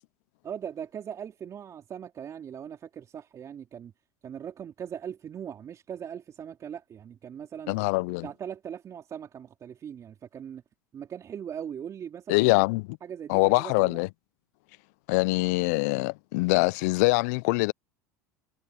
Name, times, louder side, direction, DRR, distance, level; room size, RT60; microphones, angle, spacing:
voice 1, 0.4-3.9 4.2-7.8 8.2-10.6 10.9-12.5 13.0-14.0, right 8 dB, 35° right, 3.4 m, -40 dB
voice 2, 7.7-8.3 12.3-13.0 13.3-14.1 15.1-17.7, left 26 dB, 70° left, 0.4 m, -24 dB
hypercardioid pair, 95°, 9 cm